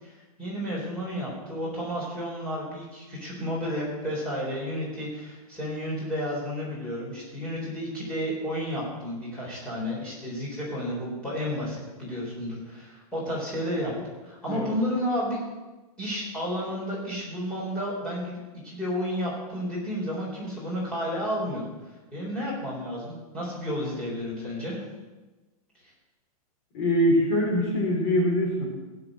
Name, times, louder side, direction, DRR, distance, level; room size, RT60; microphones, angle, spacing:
voice 1, 0.0-13.9 14.2-15.4 16.0-21.6 22.1-24.8, equal, 5° left, -7 dB, 3.8 m, -32 dB
voice 2, 26.7-28.7, equal, 45° left, -1 dB, 3.7 m, -23 dB
16.5 x 6.9 x 7.6 m, 1.2 s
supercardioid pair, 180°, 20 cm